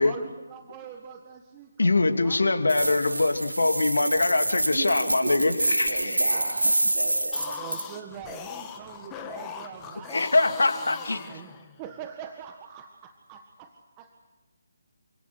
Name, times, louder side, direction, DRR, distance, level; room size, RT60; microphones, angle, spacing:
voice 1, 0.0-2.4 2.8-3.2 7.6-10.6 11.2-11.5 11.8-14.2, right 8 dB, 20° right, 5 dB, 1.6 m, -43 dB
voice 2, 1.8-6.3 10.1-11.2, left 2 dB, 70° left, 6 dB, 2.8 m, -23 dB
sound 1, 2.7-7.9, right 1 dB, 85° right, 1.5 m, -27 dB
voice 3, 4.7-7.6, right 3 dB, 60° right, 2 dB, 4.0 m, -34 dB
sound 2, 7.2-11.9, left 7 dB, 15° left, 2.0 m, -40 dB
29.0 x 26.5 x 6.4 m, 1.2 s
figure-of-eight pair, 150°, 0 cm